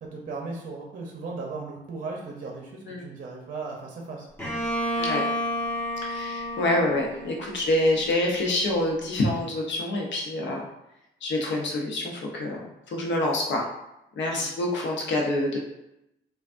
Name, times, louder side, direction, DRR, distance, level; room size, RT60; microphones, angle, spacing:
voice 1, 0.0-4.3 14.3-14.5, right 3 dB, 45° right, 0 dB, 0.7 m, -37 dB
Bowed string instrument, 4.4-8.1, equal, 10° left, 1.0 m, -30 dB
voice 2, 6.0-10.7 11.2-13.7 14.2-15.6, left 1 dB, 65° left, 0 dB, 0.8 m, -26 dB
3.3 x 2.4 x 2.5 m, 0.88 s
cardioid pair, 90°, 20 cm